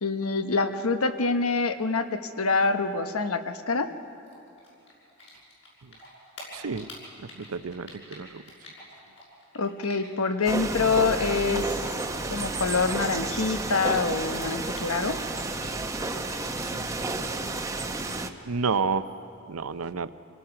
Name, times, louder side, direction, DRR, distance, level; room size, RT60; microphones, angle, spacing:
voice 1, 0.0-3.9 9.5-11.6 12.3-15.2, left 4 dB, 85° left, 8 dB, 1.0 m, -26 dB
Typing, 4.2-5.7 5.9-10.4 10.7-14.2 14.5-15.8, left 2 dB, 60° left, 6.6 m, -48 dB
voice 2, 6.5-6.9 7.4-8.4 18.5-19.0 19.5-20.1, right 5 dB, 85° right, 13 dB, 0.7 m, -29 dB
sound 1, 10.4-18.3, right 2 dB, 15° right, 0.8 m, -31 dB
27.0 x 18.5 x 5.9 m, 2.6 s
head